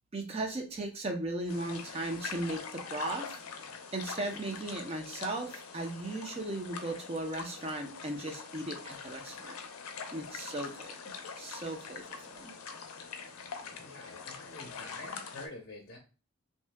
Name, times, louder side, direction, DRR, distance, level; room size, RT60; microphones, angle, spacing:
voice 1, 0.1-3.4 3.9-9.6 10.1-12.5, right 2 dB, 30° right, 3 dB, 0.5 m, -37 dB
sound 1, 1.5-15.5, left 5 dB, 85° left, 0.5 m, -44 dB
voice 2, 13.7-16.0, left 2 dB, 45° left, 1 dB, 0.7 m, -47 dB
2.7 x 2.1 x 3.3 m, 0.34 s
head